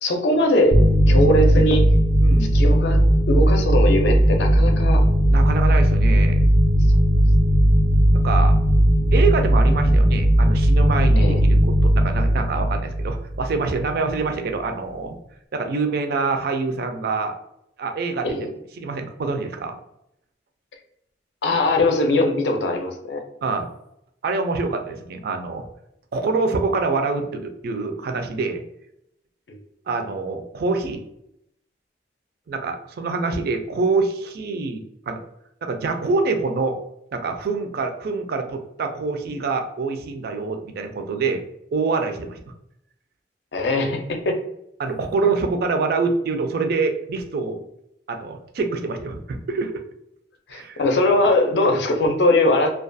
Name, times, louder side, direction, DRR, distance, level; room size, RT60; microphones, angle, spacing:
voice 1, 0.0-0.8 1.1-1.8 2.5-3.0 3.3-5.0 11.2-11.4 18.2-18.5 21.4-23.2 29.5-29.6 43.5-44.4 50.5-52.7, left 1 dB, 65° left, 4 dB, 0.5 m, -20 dB
sound 1, 0.7-13.9, equal, 10° left, 0.4 m, -17 dB
voice 2, 2.2-2.6 5.2-6.5 8.2-8.6 9.1-15.2 15.5-17.3 17.8-18.4 18.8-19.8 23.4-23.7 24.2-25.6 26.1-28.6 29.9-31.0 32.5-35.2 35.6-36.8 37.1-41.4 41.7-42.4 44.8-47.6 48.1-49.8 50.5-50.8, right 4 dB, 60° right, 5 dB, 0.3 m, -25 dB
2.3 x 2.2 x 2.5 m, 0.79 s
head